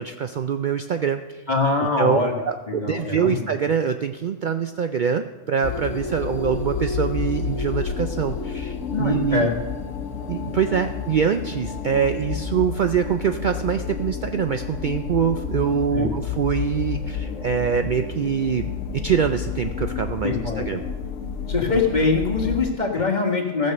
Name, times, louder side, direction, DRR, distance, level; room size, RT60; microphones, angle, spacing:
voice 1, 0.0-1.4 2.0-2.2 2.7-9.5 10.3-20.8, right 7 dB, 85° right, 8 dB, 0.4 m, -24 dB
voice 2, 1.5-2.3 2.7-3.5 8.9-9.5 15.9-16.2 20.2-20.7 21.5-23.7, left 4 dB, 35° left, 1 dB, 1.7 m, -23 dB
sound 1, 5.6-22.7, left 6 dB, 65° left, 1.2 m, -30 dB
15.5 x 6.6 x 6.5 m, 1.2 s
omnidirectional pair, 1.4 m